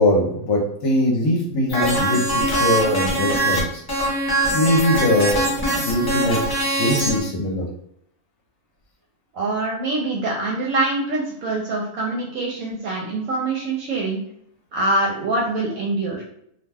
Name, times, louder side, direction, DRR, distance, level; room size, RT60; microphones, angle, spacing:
voice 1, 0.0-4.1 4.5-6.4 6.8-7.6, left 1 dB, 70° left, -2 dB, 1.0 m, -21 dB
sound 1, 1.7-3.6 3.9-7.2, right 1 dB, 30° left, 0.4 m, -22 dB
voice 2, 9.3-14.2 14.7-16.2, right 2 dB, 75° right, -2 dB, 1.0 m, -24 dB
2.5 x 2.2 x 3.3 m, 0.74 s
omnidirectional pair, 1.4 m